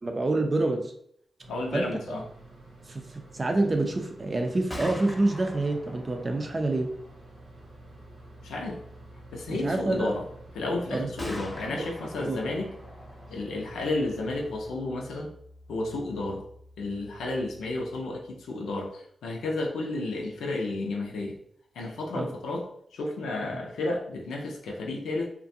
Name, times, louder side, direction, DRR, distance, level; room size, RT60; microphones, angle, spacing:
voice 1, 0.0-0.9 1.7-2.2 2.9-3.0 3.3-6.9 9.5-10.1 10.9-11.1 11.7-11.9 12.2-12.4 22.1-22.3 23.5-23.6, right 2 dB, 40° right, 4 dB, 0.5 m, -27 dB
sound 1, 1.4-14.7, right 2 dB, 75° right, 0.9 m, -51 dB
voice 2, 1.5-2.2 8.4-8.8 9.3-10.2 10.5-12.7 13.3-15.3 15.7-16.4 16.8-21.4 21.8-22.7 22.9-25.3, left 2 dB, 90° left, 0 dB, 0.5 m, -32 dB
Gunshot gunfire, 4.5-18.3, left 1 dB, 25° left, 0.8 m, -46 dB
2.4 x 2.2 x 2.6 m, 0.67 s
cardioid pair, 50°, 0 cm